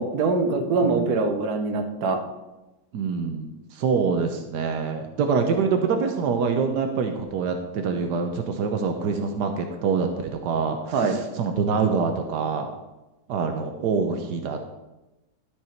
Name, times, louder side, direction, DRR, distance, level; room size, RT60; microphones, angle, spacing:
voice 1, 0.0-2.2 10.9-11.1, right 3 dB, 65° right, 5 dB, 1.5 m, -23 dB
voice 2, 0.5-1.2 2.9-12.7 13.3-14.7, right 5 dB, 85° right, 5 dB, 1.4 m, -25 dB
12.5 x 5.4 x 4.4 m, 1.0 s
omnidirectional pair, 1.8 m